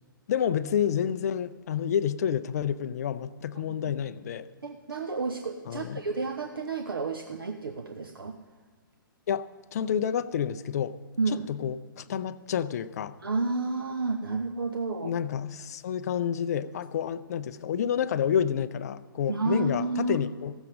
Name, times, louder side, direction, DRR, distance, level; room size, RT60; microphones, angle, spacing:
voice 1, 0.3-4.5 5.7-6.0 9.3-11.0 11.5-13.2 15.0-20.5, left 8 dB, 45° left, 14 dB, 0.5 m, -29 dB
voice 2, 4.6-8.4 11.2-11.5 13.2-15.1 19.3-20.2, right 3 dB, 75° right, 6 dB, 0.8 m, -31 dB
15.0 x 7.2 x 6.3 m, 1.5 s
figure-of-eight pair, 120°, 12 cm